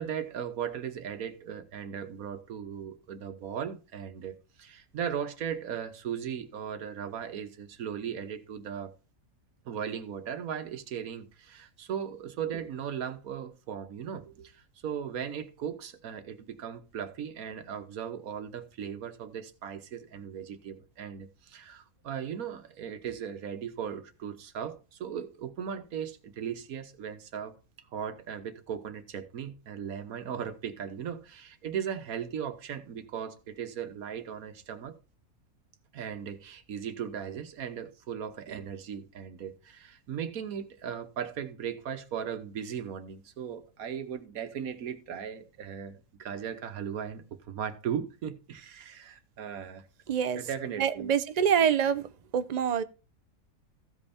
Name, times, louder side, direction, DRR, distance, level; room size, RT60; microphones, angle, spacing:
voice 1, 0.0-8.9 9.6-27.5 27.9-35.0 35.9-49.9 50.4-51.1, right 8 dB, 90° right, 1.4 m, -37 dB
voice 2, 50.1-50.4 50.8-52.0 52.3-52.8, right 8 dB, 55° right, 0.4 m, -25 dB
14.5 x 5.4 x 4.2 m
omnidirectional pair, 1.5 m